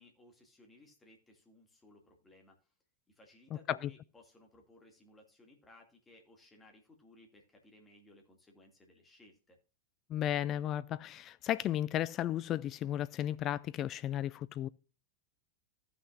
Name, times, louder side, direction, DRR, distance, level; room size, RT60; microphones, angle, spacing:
voice 1, 0.0-2.7 3.1-9.6, left 1 dB, 15° left, 2.3 m, -61 dB
voice 2, 10.1-14.7, left 12 dB, 30° left, 0.3 m, -34 dB
15.5 x 6.0 x 2.5 m
figure-of-eight pair, 90°, 0 cm